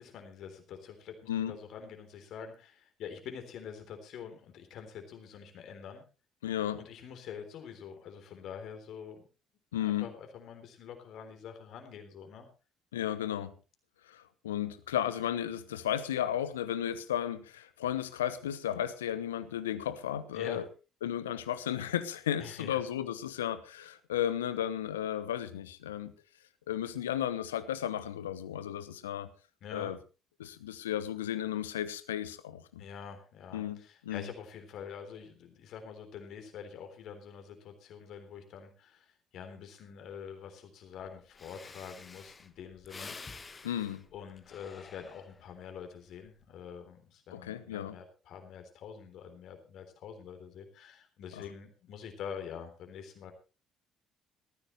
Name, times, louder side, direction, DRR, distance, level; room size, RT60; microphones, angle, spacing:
voice 1, 0.0-6.0 6.8-9.2 9.8-12.5 20.3-20.6 22.4-22.8 29.6-29.9 32.8-43.2 44.1-53.3, left 7 dB, 60° left, 6 dB, 3.6 m, -46 dB
voice 2, 6.4-6.8 9.7-10.1 12.9-13.5 14.1-20.6 21.0-26.1 26.7-29.3 29.7-30.0 30.4-32.8 33.5-34.3 43.6-44.0 47.3-48.0 51.3-51.4, left 10 dB, 80° left, 14 dB, 1.0 m, -34 dB
Breathing, 41.0-41.1 41.3-45.6 46.1-46.4, left 4 dB, 30° left, 1.5 m, -49 dB
18.5 x 14.5 x 3.2 m, 0.32 s
figure-of-eight pair, 50°, 0 cm